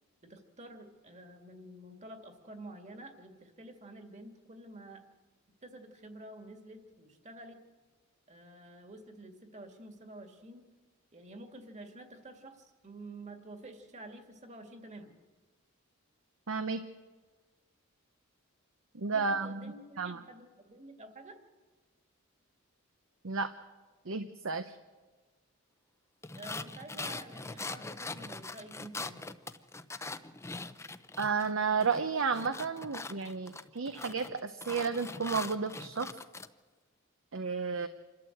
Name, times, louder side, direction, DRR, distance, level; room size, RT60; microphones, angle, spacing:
voice 1, 0.2-5.0 5.6-7.6 8.3-10.6 11.1-15.1 19.1-21.4 26.3-29.2, right 1 dB, 35° right, 6 dB, 2.1 m, -49 dB
voice 2, 16.5-16.8 18.9-19.6 20.0-20.2 23.2-23.5 24.1-24.7 31.2-36.1 37.3-37.9, right 5 dB, 65° right, 9 dB, 0.8 m, -32 dB
sound 1, 26.2-31.5 31.8-36.5, left 3 dB, 15° left, 0.6 m, -42 dB
27.5 x 12.5 x 7.9 m, 1.3 s
head